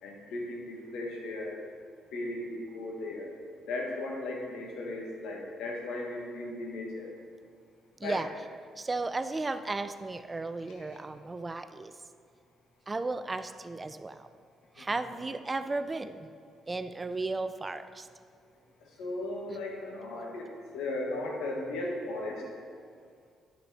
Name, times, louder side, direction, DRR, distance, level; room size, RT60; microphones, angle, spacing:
voice 1, 0.0-1.6 2.1-3.3 3.7-7.1 8.0-8.2 10.7-11.0 14.8-14.9 15.1-15.2 18.8-22.5, left 2 dB, 90° left, 0 dB, 1.4 m, -36 dB
voice 2, 8.8-11.9 12.9-14.3 14.8-16.3 16.7-18.1 19.5-19.6, right 3 dB, 25° right, 11 dB, 0.4 m, -34 dB
10.0 x 5.8 x 4.1 m, 2.2 s
cardioid pair, 90°, 0 cm